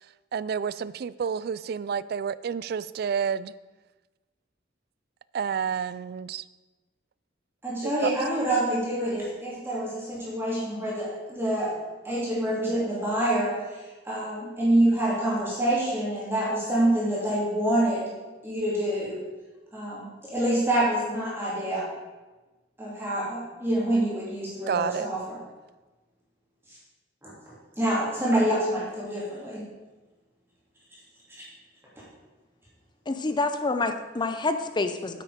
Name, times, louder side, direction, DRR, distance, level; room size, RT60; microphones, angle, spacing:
voice 1, 0.3-3.5 5.3-6.4 7.8-8.1 8.5-8.6 24.7-25.1, right 7 dB, 55° right, 17 dB, 0.3 m, -29 dB
voice 2, 7.6-11.7 12.0-13.5 14.0-18.0 18.4-19.2 19.7-21.9 22.8-25.4 27.2-27.3 27.8-29.6, right 1 dB, 15° right, -8 dB, 3.1 m, -26 dB
voice 3, 33.1-35.2, left 3 dB, 25° left, 9 dB, 0.5 m, -27 dB
9.3 x 8.3 x 5.1 m, 1.2 s
head